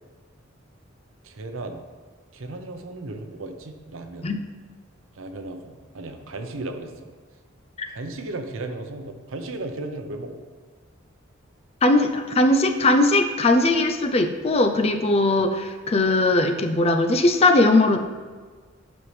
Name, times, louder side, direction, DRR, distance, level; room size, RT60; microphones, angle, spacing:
voice 1, 1.2-1.8 2.3-4.3 5.2-7.1 7.9-10.4 15.4-15.5, right 2 dB, 80° right, 6 dB, 0.7 m, -35 dB
voice 2, 11.8-18.0, left 2 dB, 30° left, 6 dB, 0.5 m, -19 dB
9.6 x 5.4 x 3.3 m, 1.5 s
head